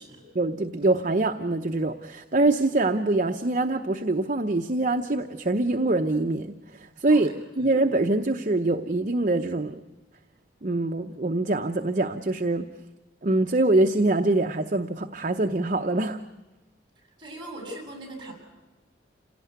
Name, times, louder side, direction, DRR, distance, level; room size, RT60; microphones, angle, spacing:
voice 1, 0.3-7.3 7.6-9.8 10.6-12.7 13.2-16.2, right 2 dB, 45° right, 6 dB, 0.8 m, -24 dB
voice 2, 17.2-18.3, right 1 dB, 25° right, 1 dB, 7.1 m, -40 dB
27.5 x 17.5 x 9.5 m, 1.1 s
head